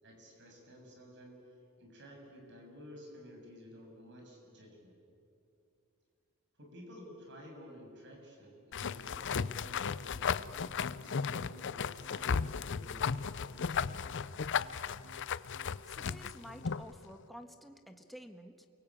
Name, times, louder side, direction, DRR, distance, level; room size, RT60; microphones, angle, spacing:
voice 1, 0.0-1.4 1.8-4.9 6.6-10.6 11.0-14.3, equal, 55° right, 1 dB, 7.3 m, -53 dB
sound 1, 8.7-16.9, left 6 dB, 60° left, 0.6 m, -35 dB
sound 2, 8.9-16.8, equal, 75° left, 1.6 m, -55 dB
voice 2, 15.9-18.7, equal, ahead, 5 dB, 1.4 m, -51 dB
28.5 x 23.5 x 8.7 m, 2.7 s
head